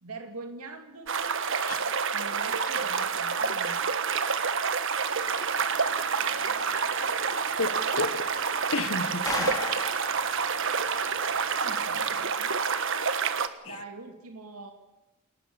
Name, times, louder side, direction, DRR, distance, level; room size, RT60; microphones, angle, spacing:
voice 1, 0.0-1.3 2.1-3.9 11.6-12.5 13.3-13.4 13.6-14.7, right 3 dB, 90° right, 2.5 m, -43 dB
sound 1, 1.1-13.5, right 6 dB, 60° right, 1.4 m, -28 dB
sound 2, 5.1-12.2, left 2 dB, 15° left, 2.9 m, -41 dB
voice 2, 7.6-8.3 8.7-9.5, left 3 dB, 65° left, 1.5 m, -32 dB
28.5 x 18.5 x 7.1 m
head